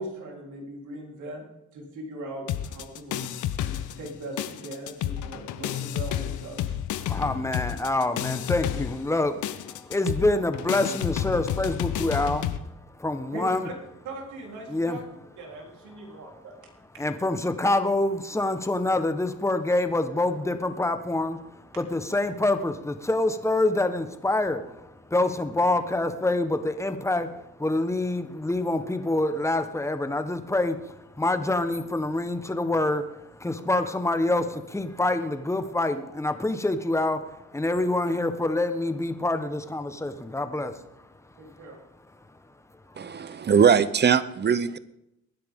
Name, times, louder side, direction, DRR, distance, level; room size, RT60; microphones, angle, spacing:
voice 1, 0.0-1.4 1.7-3.3 4.0-6.8 13.3-13.7 14.0-15.0 15.4-16.5 41.4-41.8 43.3-43.4, right 2 dB, 75° right, -1 dB, 3.9 m, -39 dB
sound 1, 2.5-4.1 4.4-12.6, left 11 dB, 80° left, 0.9 m, -31 dB
voice 2, 7.0-12.5 13.0-13.7 14.7-15.0 17.0-40.7, left 2 dB, 10° left, 8 dB, 1.2 m, -26 dB
voice 3, 43.0-44.8, right 7 dB, 35° right, 16 dB, 0.8 m, -21 dB
23.0 x 10.5 x 3.7 m, 0.88 s
cardioid pair, 90°, 30 cm